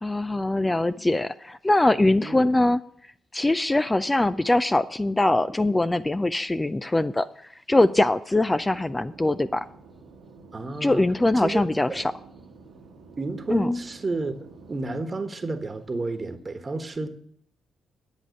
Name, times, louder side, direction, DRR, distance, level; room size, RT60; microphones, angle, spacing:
voice 1, 0.0-2.8 3.3-7.3 7.7-9.6 10.8-12.0 13.5-13.7, left 2 dB, 20° left, 0.5 m, -22 dB
voice 2, 2.2-2.5 10.5-11.0 11.3-12.1 13.2-14.3 14.7-17.1, right 2 dB, 35° right, 1.4 m, -31 dB
sound 1, 8.5-15.1, right 4 dB, 70° right, 1.3 m, -49 dB
10.5 x 8.4 x 6.4 m
hypercardioid pair, 40°, 0 cm